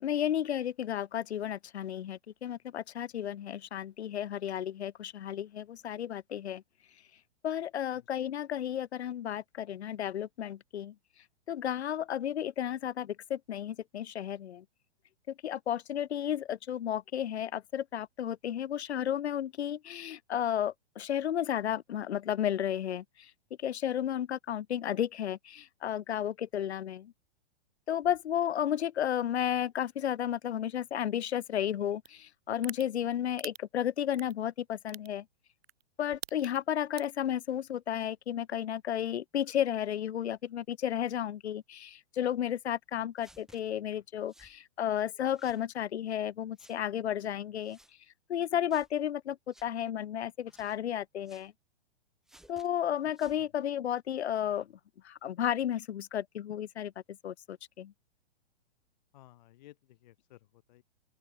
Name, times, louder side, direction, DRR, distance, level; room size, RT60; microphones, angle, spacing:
voice 1, 0.0-6.6 7.4-10.9 11.5-14.6 15.4-23.3 23.6-27.1 27.9-35.2 36.0-47.8 48.3-51.5 52.5-54.7 55.0-56.9 57.2-57.9, left 10 dB, 85° left, 1.1 m, -33 dB
sound 1, 32.1-32.2 32.6-32.8 33.4-33.6 34.1-34.3 34.9-35.1 35.6-35.8 36.1-36.6 37.0-37.2, right 12 dB, 70° right, 0.8 m, -41 dB
sound 2, 43.2-43.6 44.3-44.6 45.3-45.6 46.6-46.8 47.6-47.9 48.7-48.9 49.5-49.7 50.5-50.8 51.2-51.5 52.3-52.7 53.1-53.4, right 1 dB, ahead, 5.8 m, -59 dB
voice 2, 59.1-60.8, left 15 dB, 45° left, 0.8 m, -57 dB
open air
hypercardioid pair, 160°, 32 cm